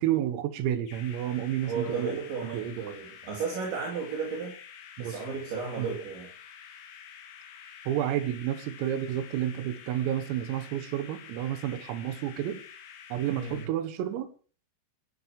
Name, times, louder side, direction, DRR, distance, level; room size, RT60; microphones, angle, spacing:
voice 1, 0.0-2.2 2.5-2.9 5.0-5.4 5.8-5.9 7.9-12.6 13.1-14.3, right 11 dB, 90° right, 4.0 m, -30 dB
sound 1, 0.8-13.7, left 8 dB, 60° left, 3.6 m, -48 dB
voice 2, 1.7-4.5 5.0-6.3 13.3-13.6, right 4 dB, 65° right, 5.6 m, -34 dB
23.5 x 14.5 x 3.3 m
omnidirectional pair, 5.9 m